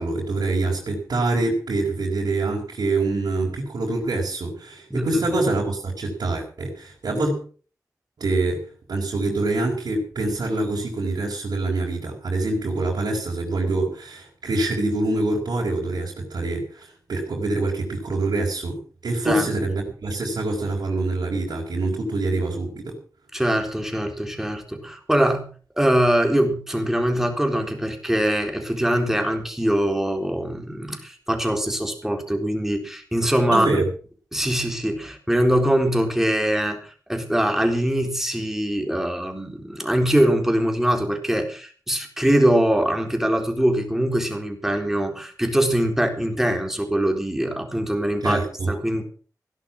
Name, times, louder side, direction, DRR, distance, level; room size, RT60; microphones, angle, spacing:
voice 1, 0.0-7.4 8.2-23.0 33.5-33.8 48.2-48.7, right 2 dB, 75° right, -1 dB, 4.6 m, -25 dB
voice 2, 4.9-5.4 19.2-19.5 23.3-25.5 25.7-33.7 34.3-49.0, right 1 dB, 5° right, 4 dB, 3.9 m, -23 dB
16.5 x 11.5 x 6.0 m, 0.41 s
wide cardioid pair, 105°, 7 cm